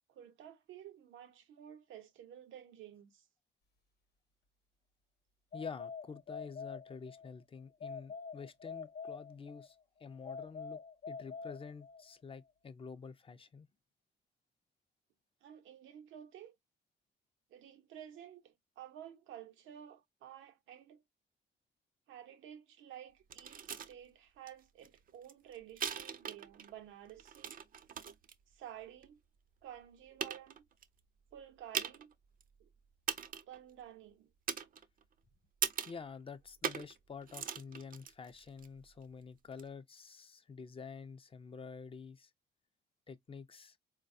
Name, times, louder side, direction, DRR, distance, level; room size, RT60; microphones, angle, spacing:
voice 1, 0.1-3.3 15.4-16.5 17.5-21.0 22.1-27.6 28.5-29.2 29.6-30.7 31.3-32.1 32.6-32.7 33.5-34.3, right 10 dB, 85° right, 0.6 m, -52 dB
sound 1, 5.5-7.3 7.8-9.7 10.3-12.1, left 5 dB, 55° left, 0.8 m, -46 dB
voice 2, 5.5-10.8 11.1-13.7 35.9-42.3 43.1-43.8, left 5 dB, 30° left, 0.4 m, -48 dB
sound 2, 23.3-23.9 24.5-24.6 24.8-26.7 27.1-28.3 29.0-29.1 29.7-29.8 30.2-30.8 31.7-32.1 32.4-32.5 33.1-33.6 34.5-35.1 35.6-36.0 36.6-37.0 37.2-38.7 39.5-39.6, right 7 dB, 45° right, 0.4 m, -40 dB
3.9 x 2.2 x 2.5 m
cardioid pair, 90°, 20 cm